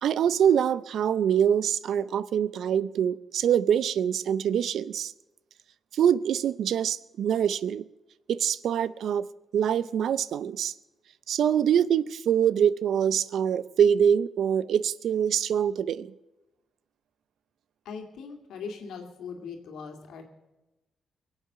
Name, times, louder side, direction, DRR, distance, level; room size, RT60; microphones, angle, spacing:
voice 1, 0.0-5.1 5.9-7.8 8.3-9.3 9.5-10.7 11.3-16.1, right 8 dB, 75° right, 18 dB, 0.5 m, -24 dB
voice 2, 17.8-20.2, left 5 dB, 90° left, 3 dB, 2.4 m, -40 dB
23.0 x 8.0 x 6.8 m, 1.0 s
cardioid pair, 120°, 0 cm